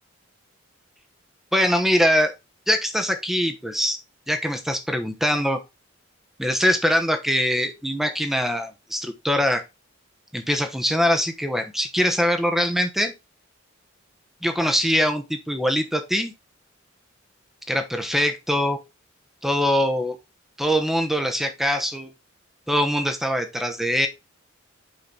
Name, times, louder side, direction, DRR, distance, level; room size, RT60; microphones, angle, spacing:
voice 1, 1.5-2.3 2.7-4.0 4.3-5.6 6.4-9.6 10.3-13.1 14.4-16.3 17.7-18.8 19.4-20.2 20.6-22.1 22.7-24.1, equal, ahead, 6 dB, 1.0 m, -23 dB
7.2 x 5.1 x 3.9 m, 0.24 s
head